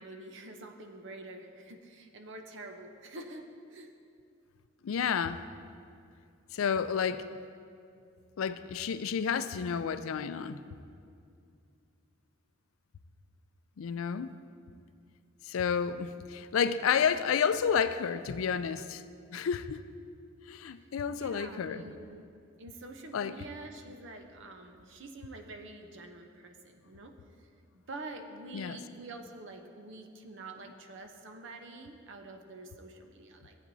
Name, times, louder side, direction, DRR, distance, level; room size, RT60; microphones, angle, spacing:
voice 1, 0.0-3.9 20.7-22.3 22.6-33.6, right 2 dB, 65° right, 5 dB, 0.8 m, -47 dB
voice 2, 4.8-5.4 6.5-7.2 8.4-10.6 13.8-14.3 15.4-19.0 19.3-19.8 20.5-21.8 23.1-23.3 28.5-28.8, left 7 dB, 85° left, 12 dB, 0.4 m, -30 dB
15.0 x 8.5 x 2.7 m, 2.4 s
head